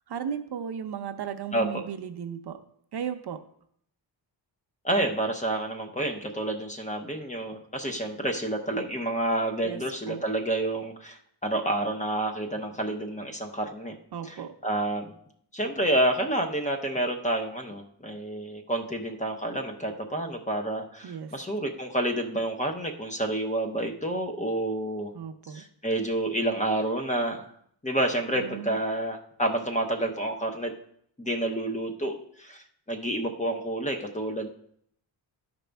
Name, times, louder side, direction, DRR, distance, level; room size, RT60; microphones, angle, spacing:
voice 1, 0.1-2.6 2.9-3.4 9.6-9.8 10.1-10.2 14.1-14.5 21.0-21.3 25.1-25.6 28.3-28.8, right 8 dB, 60° right, 7 dB, 0.7 m, -35 dB
voice 2, 1.5-1.8 4.8-14.0 14.2-14.4 14.6-15.1 15.5-25.1 25.5-27.5 27.8-30.7 31.2-34.5, right 1 dB, 15° left, 4 dB, 0.7 m, -29 dB
12.5 x 5.2 x 3.4 m, 0.68 s
wide cardioid pair, 160°, 44 cm